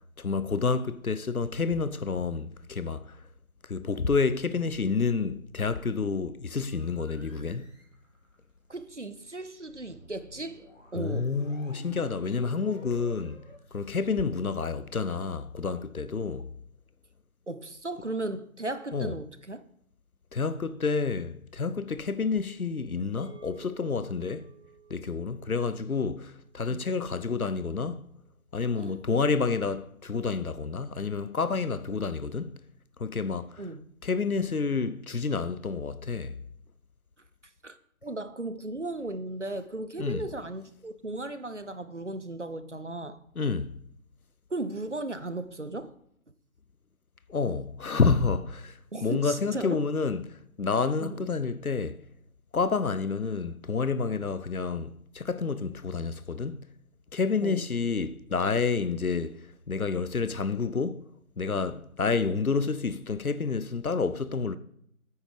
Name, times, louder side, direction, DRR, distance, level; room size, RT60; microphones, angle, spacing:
voice 1, 0.2-3.2 3.7-7.7 11.0-13.4 13.7-16.5 18.9-19.1 20.3-24.5 24.9-28.0 28.5-32.6 33.0-33.6 34.0-36.3 40.0-40.2 43.4-43.8 47.3-52.0 52.5-56.7 57.1-59.4 59.7-61.1 61.4-64.6, left 4 dB, 75° left, 0.8 m, -29 dB
sound 1, 6.7-13.6, left 1 dB, 60° left, 2.7 m, -52 dB
voice 2, 8.7-10.6 10.9-11.3 17.5-19.6 26.7-26.8 28.8-29.0 33.6-33.8 37.6-37.8 38.0-43.2 44.5-45.9 48.9-49.8 51.0-51.3 57.4-57.6, right 2 dB, 55° right, 0.7 m, -36 dB
sound 2, 23.2-27.7, right 6 dB, 20° right, 3.4 m, -54 dB
9.4 x 8.2 x 5.0 m
figure-of-eight pair, 180°, 43 cm